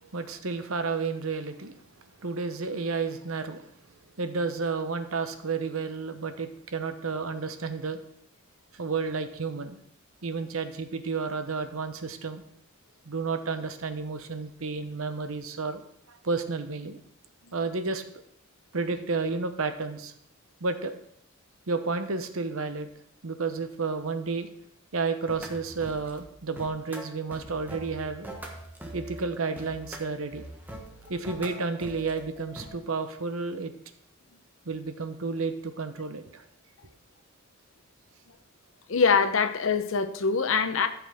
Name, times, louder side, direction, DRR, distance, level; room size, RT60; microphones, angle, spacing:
voice 1, 0.0-1.8 2.2-3.6 4.2-8.0 8.7-9.8 10.2-12.4 13.0-15.8 16.1-17.0 17.5-18.0 18.7-20.1 20.6-20.9 21.7-22.9 23.2-24.5 24.9-28.3 28.9-30.5 31.1-33.7 34.7-36.5, right 4 dB, 80° right, 9 dB, 0.8 m, -31 dB
sound 1, 25.3-26.2 26.6-32.7, right 1 dB, 10° right, 1.2 m, -43 dB
voice 2, 38.9-40.9, left 5 dB, 70° left, 10 dB, 0.7 m, -23 dB
14.0 x 5.9 x 3.5 m, 0.69 s
head